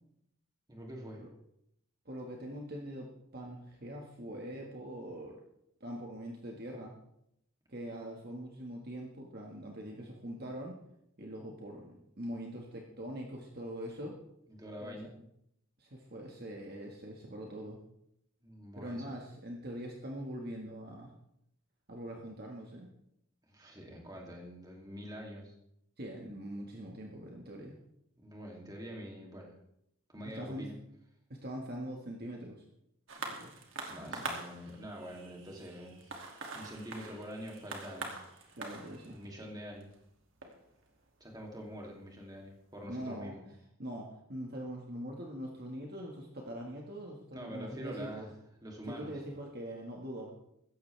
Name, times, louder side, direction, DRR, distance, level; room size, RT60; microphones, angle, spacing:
voice 1, 0.7-1.2 14.5-15.1 18.4-19.0 23.5-25.5 28.2-29.5 30.1-30.7 33.2-33.3 33.9-36.2 36.5-38.1 39.1-39.9 41.2-43.4 47.3-48.3 48.6-49.1, equal, 20° right, -1 dB, 3.0 m, -45 dB
voice 2, 2.1-5.4 5.8-6.9 7.7-10.8 11.2-14.2 14.8-15.0 15.8-17.8 18.7-21.1 21.9-22.9 26.0-27.8 30.3-30.7 31.3-32.6 33.3-33.5 34.1-34.2 38.6-39.2 42.9-43.3 43.8-48.3 48.9-50.3, equal, 45° right, 0 dB, 1.9 m, -43 dB
sound 1, 33.1-41.9 42.7-42.8, right 3 dB, 65° right, 2.6 m, -45 dB
16.0 x 14.0 x 3.5 m, 0.77 s
head